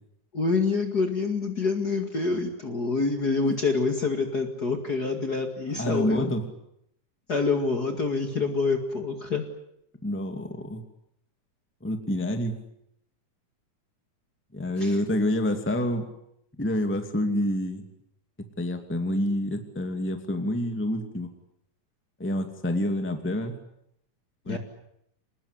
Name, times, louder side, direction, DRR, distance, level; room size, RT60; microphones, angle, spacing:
voice 1, 0.3-6.3 7.3-9.4 14.8-15.0 24.5-24.6, left 4 dB, 35° left, 5 dB, 2.3 m, -26 dB
voice 2, 5.7-6.5 10.0-10.8 11.8-12.6 14.5-16.1 16.6-17.8 18.6-21.3 22.2-23.6 24.5-24.6, left 1 dB, 5° left, 6 dB, 2.0 m, -28 dB
27.0 x 20.0 x 9.9 m, 0.76 s
omnidirectional pair, 3.6 m